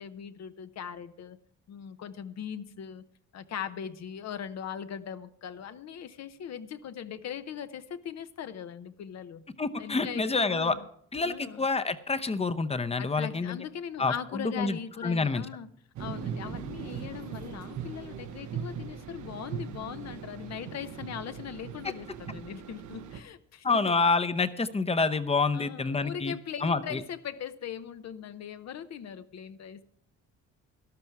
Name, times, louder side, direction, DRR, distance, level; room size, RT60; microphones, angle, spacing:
voice 1, 0.0-1.4 1.7-3.0 3.3-9.4 9.8-10.9 11.2-11.7 13.0-15.7 16.0-24.0 25.5-29.8, left 8 dB, 60° left, 11 dB, 0.8 m, -40 dB
voice 2, 9.6-10.8 11.1-13.6 14.0-15.5 23.6-26.3 26.6-27.0, left 4 dB, 20° left, 11 dB, 0.8 m, -28 dB
sound 1, 16.0-23.2, right 7 dB, 70° right, 1.0 m, -39 dB
13.0 x 12.0 x 4.7 m, 0.66 s
cardioid pair, 90°, 30 cm